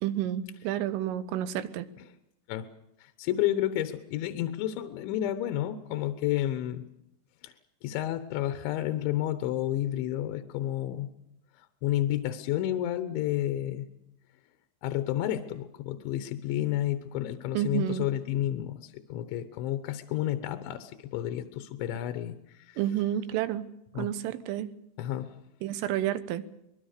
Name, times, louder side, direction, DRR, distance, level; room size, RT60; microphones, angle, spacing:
voice 1, 0.0-1.9 17.6-18.1 22.8-23.7 24.0-24.8 25.6-26.4, right 12 dB, 85° right, 14 dB, 3.7 m, -30 dB
voice 2, 3.0-6.8 7.4-7.5 7.8-11.1 11.6-13.9 14.8-22.8 23.9-24.1 25.0-25.3, left 13 dB, 75° left, 10 dB, 3.3 m, -31 dB
25.0 x 21.0 x 6.7 m, 0.82 s
omnidirectional pair, 5.6 m